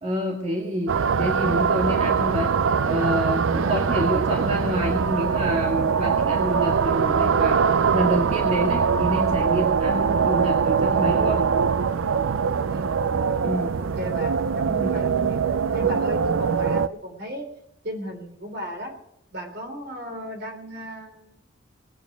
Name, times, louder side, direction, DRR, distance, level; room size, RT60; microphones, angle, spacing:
voice 1, 0.0-2.5 2.8-7.6 7.9-11.4 13.4-13.7 14.8-14.9 15.8-15.9, equal, 30° right, -1 dB, 2.0 m, -27 dB
sound 1, 0.9-16.9, right 6 dB, 80° right, 0.5 m, -22 dB
voice 2, 12.7-13.0 13.8-15.4 15.7-17.5 17.8-19.0 19.3-21.4, equal, 55° right, 4 dB, 3.5 m, -35 dB
20.0 x 9.3 x 6.1 m, 0.77 s
head